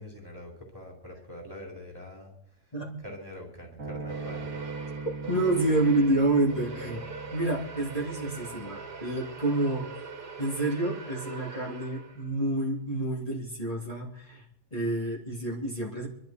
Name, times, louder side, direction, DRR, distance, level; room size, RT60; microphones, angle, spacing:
voice 1, 0.0-2.3 3.0-4.5, left 1 dB, 15° right, -1 dB, 3.6 m, -44 dB
sound 1, 3.8-10.4, right 3 dB, 50° right, 2.7 m, -41 dB
sound 2, 4.1-12.4, right 5 dB, 85° right, 2.0 m, -42 dB
voice 2, 5.3-7.0 7.3-9.9 10.4-14.4 14.7-16.1, right 2 dB, 20° left, -6 dB, 2.9 m, -28 dB
26.5 x 11.5 x 4.4 m, 0.80 s
omnidirectional pair, 1.7 m